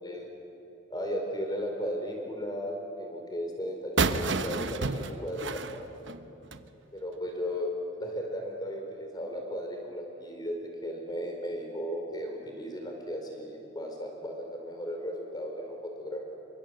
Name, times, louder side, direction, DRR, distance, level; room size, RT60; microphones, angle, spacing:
voice 1, 0.9-5.8 6.9-7.7 8.0-10.6 10.8-16.4, equal, 20° left, 2 dB, 4.5 m, -35 dB
sound 1, 4.0-6.7, right 4 dB, 75° right, 1.1 m, -30 dB
27.5 x 24.0 x 7.8 m, 2.8 s
head